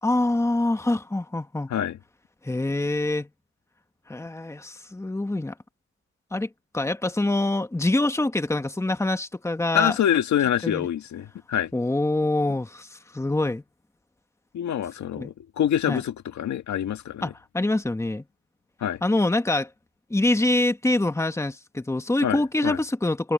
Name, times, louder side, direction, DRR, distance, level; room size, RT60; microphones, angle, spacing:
voice 1, 0.0-1.7 2.4-3.3 4.1-5.5 6.3-9.9 10.6-10.9 11.7-13.6 15.2-15.3 15.9-16.0 17.2-18.2 19.0-19.7 20.1-23.3, left 2 dB, 10° left, 1.6 m, -25 dB
voice 2, 9.7-11.7 14.5-17.3 18.8-19.0 22.2-22.8, left 10 dB, 65° left, 2.0 m, -26 dB
cardioid pair, 90°, 30 cm